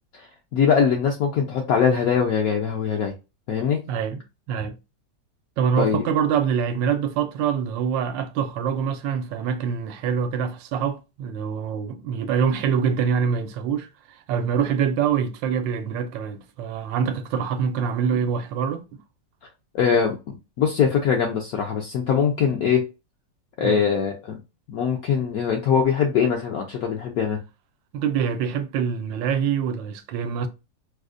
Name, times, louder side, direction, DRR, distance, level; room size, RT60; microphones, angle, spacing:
voice 1, 0.5-3.1 3.5-3.8 5.8-6.0 19.7-22.9 23.6-24.4 24.7-27.4, left 7 dB, 70° left, 0.9 m, -22 dB
voice 2, 3.9-4.2 4.5-4.8 5.6-18.8 23.6-23.9 27.9-30.5, right 7 dB, 85° right, 1.3 m, -25 dB
4.9 x 2.1 x 2.5 m
omnidirectional pair, 2.0 m